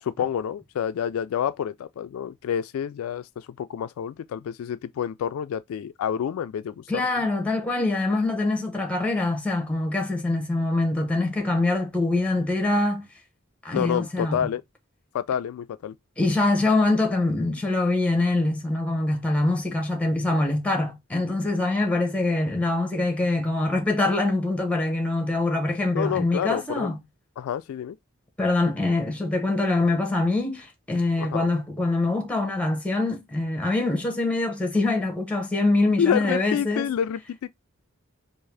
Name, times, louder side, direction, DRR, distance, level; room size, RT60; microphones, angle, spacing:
voice 1, 0.0-7.0 13.7-14.6 15.1-15.9 25.9-26.9 27.4-28.0 31.2-31.5 36.0-37.5, left 8 dB, 80° left, 0.3 m, -28 dB
voice 2, 6.9-13.1 13.6-14.5 16.2-27.0 28.4-36.9, left 2 dB, 5° left, 0.8 m, -24 dB
3.6 x 2.5 x 3.2 m
head